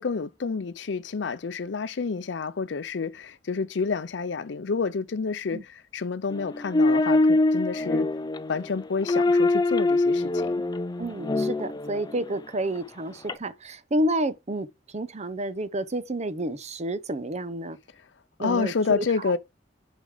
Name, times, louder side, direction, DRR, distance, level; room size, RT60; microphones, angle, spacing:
voice 1, 0.0-8.1 8.5-10.6 18.4-19.4, left 4 dB, 70° left, 0.5 m, -29 dB
sound 1, 6.3-12.3 13.3-13.4, left 2 dB, 20° left, 0.5 m, -24 dB
voice 2, 11.0-14.7 14.9-17.8 18.4-19.0, right 1 dB, 40° right, 0.8 m, -30 dB
7.3 x 5.1 x 4.9 m
head